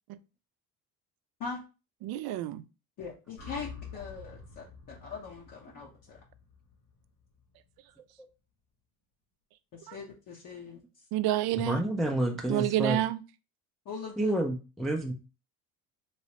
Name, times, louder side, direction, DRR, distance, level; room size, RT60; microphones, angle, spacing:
voice 1, 2.0-2.6 9.9-10.0 11.1-11.8 12.5-13.2, right 14 dB, 60° right, 0.5 m, -29 dB
voice 2, 3.0-5.9 9.7-10.8 13.9-14.4, left 5 dB, 50° left, 0.9 m, -41 dB
sound 1, 3.4-7.6, left 5 dB, 90° left, 1.6 m, -48 dB
voice 3, 11.6-13.0 14.2-15.1, right 1 dB, ahead, 0.5 m, -29 dB
3.2 x 3.0 x 2.8 m
supercardioid pair, 75°, 43 cm